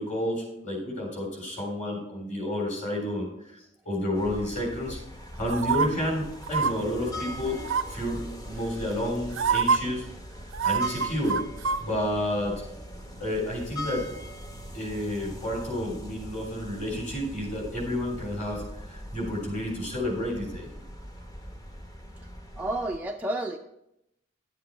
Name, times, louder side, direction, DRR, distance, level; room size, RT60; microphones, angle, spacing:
voice 1, 0.0-5.0 5.4-7.6 7.9-10.1 10.6-11.4 11.8-12.6 13.2-14.1 14.7-20.7, left 1 dB, 35° left, -1 dB, 3.6 m, -30 dB
sound 1, 4.1-23.0, equal, 20° left, 0.8 m, -41 dB
sound 2, 5.5-5.9 6.5-6.7 7.6-8.0 8.9-9.0 9.3-9.8 10.5-11.8 12.1-12.2, right 6 dB, 80° right, 0.5 m, -25 dB
voice 2, 22.6-23.6, right 1 dB, 10° right, 2 dB, 0.4 m, -30 dB
11.0 x 7.4 x 4.3 m, 0.83 s
head